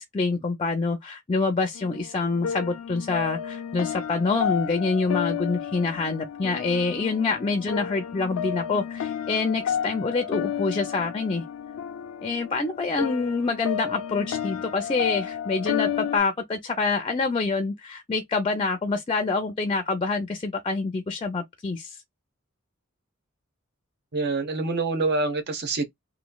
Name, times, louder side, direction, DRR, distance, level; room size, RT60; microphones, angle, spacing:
voice 1, 0.0-11.4 12.2-22.0, left 4 dB, 25° left, 0.5 m, -26 dB
sound 1, 1.7-16.2, left 8 dB, 80° left, 0.4 m, -32 dB
voice 2, 24.1-25.9, right 3 dB, 50° right, 0.8 m, -26 dB
3.0 x 2.5 x 2.2 m
head